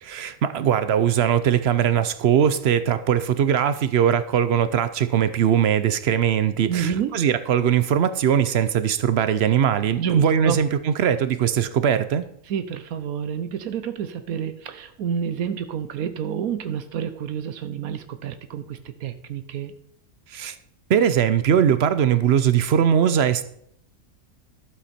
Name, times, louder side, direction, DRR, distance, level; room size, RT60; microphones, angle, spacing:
voice 1, 0.0-12.2 20.3-20.5 20.9-23.4, right 9 dB, 60° right, 12 dB, 0.7 m, -20 dB
voice 2, 6.7-7.1 10.0-10.6 12.5-19.7, right 8 dB, 80° right, 10 dB, 1.1 m, -29 dB
12.0 x 7.2 x 4.3 m, 0.69 s
omnidirectional pair, 1.5 m